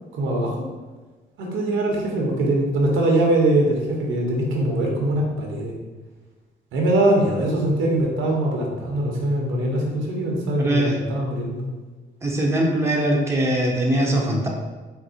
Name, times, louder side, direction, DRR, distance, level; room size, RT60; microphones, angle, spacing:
voice 1, 0.1-0.6 1.4-5.7 6.7-11.7, right 1 dB, 80° right, 0 dB, 1.0 m, -22 dB
voice 2, 10.6-10.9 12.2-14.5, right 1 dB, 15° right, -2 dB, 0.9 m, -21 dB
4.7 x 2.1 x 4.1 m, 1.3 s
cardioid pair, 90°, 20 cm